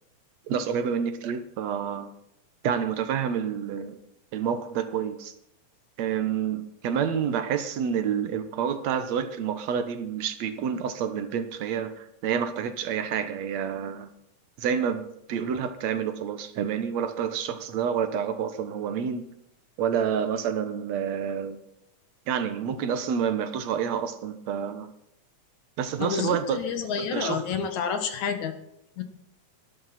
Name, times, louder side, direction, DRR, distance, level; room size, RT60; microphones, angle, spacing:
voice 1, 0.5-2.1 2.6-4.0 4.3-5.3 6.0-14.1 14.6-19.3 19.8-21.6 22.3-24.9 25.8-26.6 27.1-27.5, right 7 dB, 70° right, 2.4 m, -28 dB
voice 2, 26.0-28.5 29.0-29.1, left 7 dB, 75° left, 2.8 m, -29 dB
19.0 x 11.0 x 4.3 m
omnidirectional pair, 3.4 m